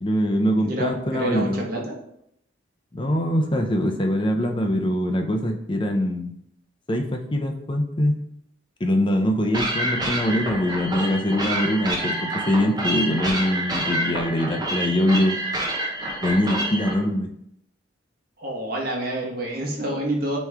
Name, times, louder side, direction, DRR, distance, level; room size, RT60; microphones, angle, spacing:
voice 1, 0.0-1.6 2.9-6.3 6.9-8.2 8.8-15.4 16.2-17.3, left 1 dB, 25° left, 3 dB, 0.6 m, -23 dB
voice 2, 0.6-2.0 18.4-20.4, right 1 dB, 50° right, -1 dB, 1.4 m, -28 dB
sound 1, 9.5-16.9, right 1 dB, 20° right, 1.0 m, -28 dB
9.1 x 3.1 x 3.5 m, 0.74 s
head